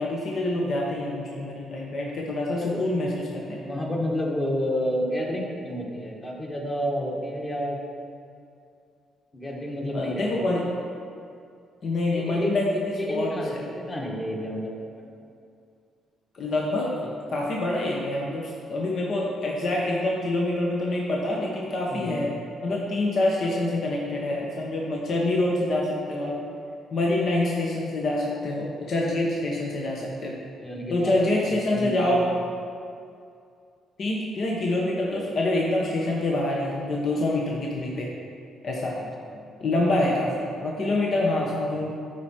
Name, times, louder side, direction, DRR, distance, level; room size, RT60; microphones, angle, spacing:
voice 1, 0.0-3.6 9.9-10.7 11.8-13.6 16.3-22.3 22.6-26.4 26.9-30.4 30.9-32.2 34.0-38.1 38.6-39.0 39.6-41.9, left 2 dB, 55° left, -3 dB, 1.2 m, -26 dB
voice 2, 3.6-7.8 9.3-10.5 12.1-15.1 21.9-22.2 30.6-31.2 31.4-32.1 39.0-39.4 41.8-41.9, equal, 25° left, -2 dB, 1.8 m, -30 dB
13.0 x 4.6 x 4.5 m, 2.4 s
cardioid pair, 90°, 0 cm